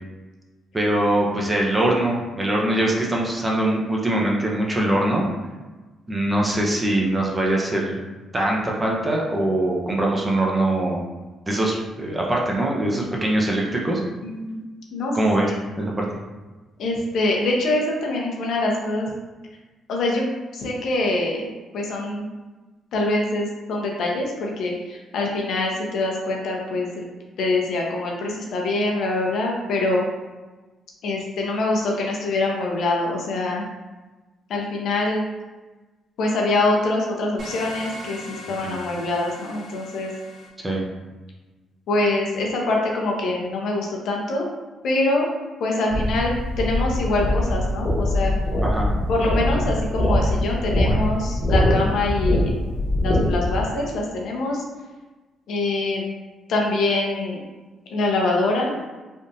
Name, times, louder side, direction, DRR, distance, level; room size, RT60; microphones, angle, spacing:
voice 1, 0.7-5.2 6.1-8.0 8.3-11.0 11.5-14.0 15.1-16.1 38.6-38.8 40.6-40.8 48.6-48.9, right 1 dB, 20° right, -2 dB, 0.7 m, -22 dB
voice 2, 14.2-14.6 14.9-15.6 16.8-19.1 19.9-20.3 20.5-21.5 21.7-22.3 22.9-27.1 27.4-30.0 31.0-33.6 34.5-35.3 36.2-40.1 41.9-44.4 44.8-45.3 45.6-48.3 49.1-52.5 53.0-54.6 55.5-56.1 56.5-57.4 57.9-58.7, left 2 dB, 70° left, -1 dB, 0.7 m, -24 dB
sound 1, 37.4-40.5, left 2 dB, 60° right, 1.1 m, -39 dB
sound 2, 45.9-53.6, left 1 dB, 40° left, 1.1 m, -22 dB
3.4 x 2.5 x 2.7 m, 1.2 s
cardioid pair, 90°, 0 cm